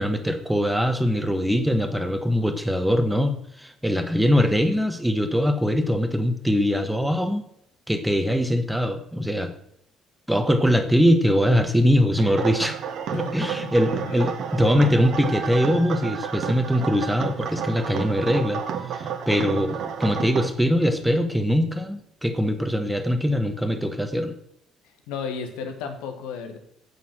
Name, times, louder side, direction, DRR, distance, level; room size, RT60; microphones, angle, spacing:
voice 1, 0.0-7.4 7.9-9.5 10.3-12.8 13.1-18.6 18.9-24.3, equal, 5° right, 7 dB, 1.2 m, -22 dB
sound 1, 12.2-20.5, right 7 dB, 55° right, 1.1 m, -31 dB
voice 2, 13.1-13.7 14.0-14.3 25.1-26.6, left 6 dB, 65° left, 5 dB, 1.4 m, -33 dB
8.2 x 7.2 x 6.2 m, 0.72 s
figure-of-eight pair, 50°, 0 cm